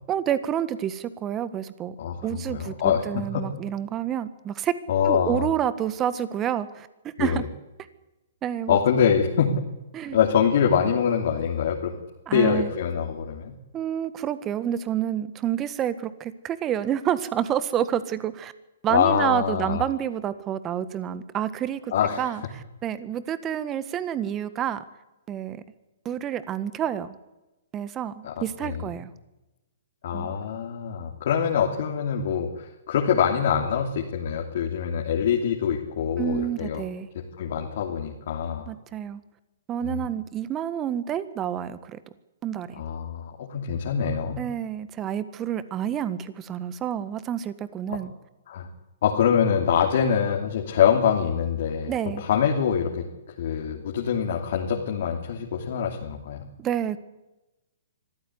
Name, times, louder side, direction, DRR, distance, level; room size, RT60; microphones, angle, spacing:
voice 1, 0.1-1.9 2.2-4.8 5.0-7.4 8.4-8.8 9.9-10.2 12.3-12.7 13.7-18.5 18.8-21.9 22.2-22.4 22.8-24.8 25.3-25.6 26.0-27.1 27.7-29.1 30.1-30.3 36.2-37.1 38.7-39.2 39.7-42.0 42.4-42.7 44.4-48.1 51.9-52.2 56.6-57.0, right 10 dB, 25° right, 15 dB, 1.6 m, -28 dB
voice 2, 2.0-3.4 4.9-5.5 7.2-7.4 8.7-9.5 10.1-11.9 12.3-13.5 18.9-19.8 21.9-22.3 28.2-28.9 30.0-36.8 37.1-38.7 39.8-40.1 42.8-44.4 47.9-48.0 48.5-48.7 49.0-53.1 53.4-56.5, left 8 dB, 60° left, 1 dB, 3.1 m, -24 dB
25.0 x 14.5 x 9.7 m, 1.0 s
hypercardioid pair, 125°, 0 cm